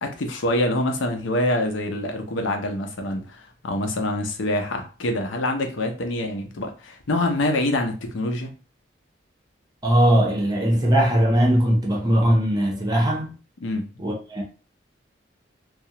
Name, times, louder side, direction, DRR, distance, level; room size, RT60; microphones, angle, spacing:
voice 1, 0.0-8.5 13.6-13.9, left 1 dB, 85° left, 0.6 m, -25 dB
voice 2, 9.8-13.3 14.0-14.4, equal, 20° right, 0.6 m, -20 dB
2.3 x 2.0 x 2.7 m
head